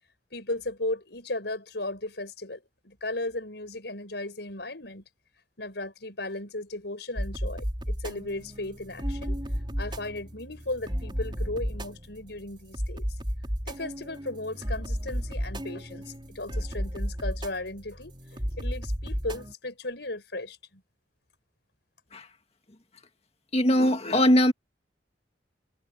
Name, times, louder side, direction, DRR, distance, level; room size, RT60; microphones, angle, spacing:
voice 1, 0.3-5.0 5.6-9.4 9.8-13.1 13.7-18.2 18.6-20.8, left 2 dB, 65° left, 7.7 m, -36 dB
sound 1, 7.2-19.5, equal, 25° right, 5.0 m, -33 dB
voice 2, 23.5-24.5, left 1 dB, 35° left, 2.0 m, -21 dB
head